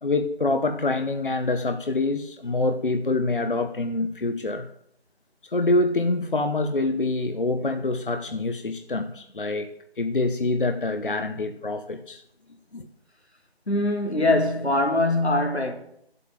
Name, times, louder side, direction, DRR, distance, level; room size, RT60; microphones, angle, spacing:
voice 1, 0.0-4.7 5.4-9.7 10.0-12.2 12.7-12.9, left 2 dB, 55° left, 1.2 m, -25 dB
voice 2, 13.7-15.7, left 2 dB, 90° left, 3.3 m, -22 dB
13.5 x 8.2 x 9.3 m
figure-of-eight pair, 160°, 32 cm